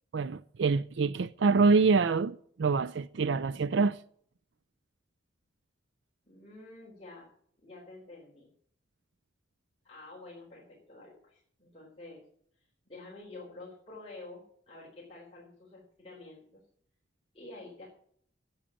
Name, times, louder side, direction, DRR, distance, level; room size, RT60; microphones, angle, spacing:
voice 1, 0.1-4.0, right 4 dB, 70° right, 0.4 m, -26 dB
voice 2, 6.3-7.3 7.6-8.5 9.8-12.2 12.6-16.6 17.3-17.9, left 2 dB, 30° left, 4.0 m, -49 dB
10.5 x 8.8 x 8.4 m
head